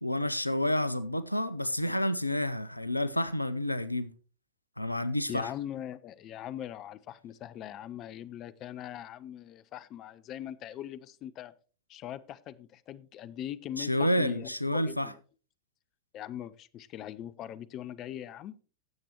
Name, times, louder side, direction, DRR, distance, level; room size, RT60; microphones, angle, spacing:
voice 1, 0.0-4.1 4.8-5.5 13.8-15.1, left 1 dB, 85° left, 0.5 m, -29 dB
voice 2, 5.3-11.5 11.9-15.2 16.1-18.5, left 11 dB, 35° left, 0.5 m, -41 dB
17.0 x 7.5 x 2.9 m
figure-of-eight pair, 90°, 0 cm